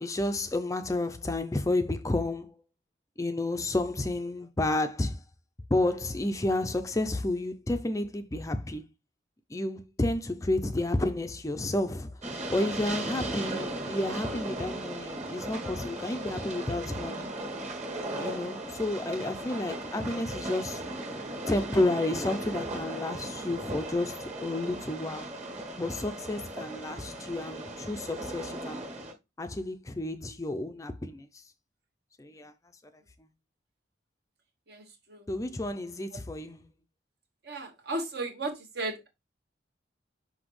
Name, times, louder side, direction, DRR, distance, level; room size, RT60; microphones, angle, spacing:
voice 1, 0.0-2.6 3.2-5.2 5.7-8.9 9.5-17.3 18.1-20.8 21.5-25.3 25.7-28.8 29.4-31.4 32.2-32.5 35.3-36.6, left 2 dB, 15° left, 0.4 m, -31 dB
Train, 12.2-29.1, right 1 dB, 40° right, 1.8 m, -37 dB
voice 2, 34.7-35.2 37.4-39.1, right 2 dB, 55° right, 1.3 m, -35 dB
6.1 x 5.1 x 3.1 m
head